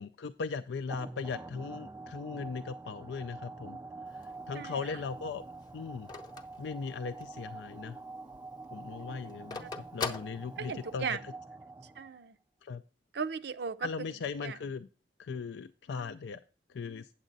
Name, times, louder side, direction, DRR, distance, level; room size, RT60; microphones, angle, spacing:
voice 1, 0.0-3.8 4.1-5.4 5.7-6.1 6.6-8.0 8.7-11.1 12.6-12.8 13.8-14.9 15.2-16.4 16.7-17.1, left 5 dB, 75° left, 0.4 m, -38 dB
sound 1, 0.9-12.3, right 3 dB, 15° right, 0.3 m, -46 dB
Telephone, 4.1-7.5 7.9-8.0 8.2-11.1, left 4 dB, 25° left, 0.7 m, -41 dB
voice 2, 4.5-5.0 9.1-9.2 9.6-9.7 10.6-11.2 11.8-12.4 13.1-14.1 14.4-14.6, right 5 dB, 65° right, 0.6 m, -37 dB
9.0 x 7.3 x 3.9 m
head